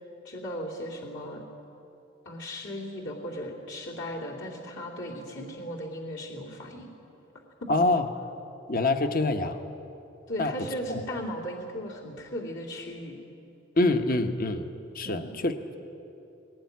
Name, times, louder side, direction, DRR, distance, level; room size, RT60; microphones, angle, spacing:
voice 1, 0.2-1.4 2.2-6.9 7.6-7.7 10.3-13.2 15.0-15.3, equal, 65° left, -4 dB, 3.0 m, -37 dB
voice 2, 7.7-8.1 8.7-9.6 10.4-10.5 10.9-11.0 13.8-14.7 14.9-15.8, left 2 dB, 50° left, 7 dB, 1.1 m, -25 dB
19.5 x 18.5 x 9.4 m, 2.9 s
head